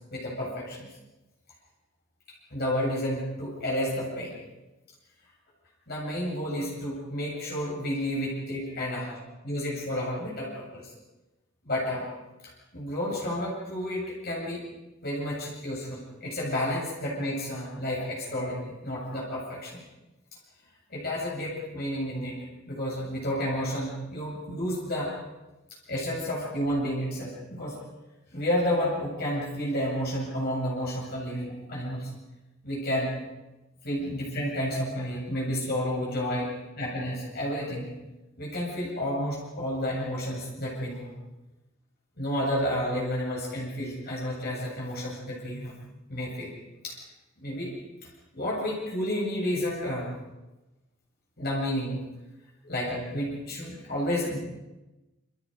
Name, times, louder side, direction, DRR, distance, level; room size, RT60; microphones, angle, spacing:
voice 1, 0.1-0.9 2.5-4.3 5.9-9.1 9.4-10.8 11.7-12.1 12.4-14.7 15.0-19.8 20.9-22.4 22.7-25.1 25.9-27.8 28.3-32.1 32.6-33.1 33.8-36.5 36.8-37.9 38.4-41.1 42.2-45.7 46.1-46.5 46.8-47.0 47.4-47.7 48.3-50.1 51.4-52.0 52.6-54.4, equal, 50° left, -4 dB, 8.0 m, -31 dB
29.0 x 26.5 x 5.3 m, 1.0 s
head